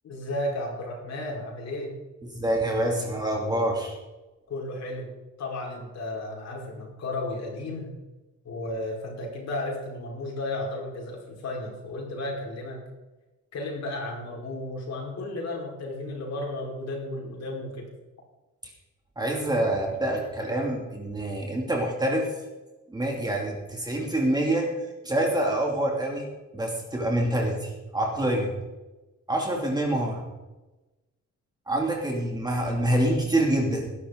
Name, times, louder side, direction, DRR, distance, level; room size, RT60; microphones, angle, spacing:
voice 1, 0.0-2.0 4.5-5.1 5.4-8.0 8.4-12.9 13.5-17.9, left 1 dB, 60° left, -1 dB, 5.0 m, -33 dB
voice 2, 2.3-4.0 19.2-22.3 22.9-24.7 25.0-28.5 29.3-30.2 31.7-33.9, right 1 dB, 15° right, -1 dB, 2.8 m, -26 dB
19.5 x 12.0 x 4.0 m, 1.1 s
cardioid pair, 155°, 29 cm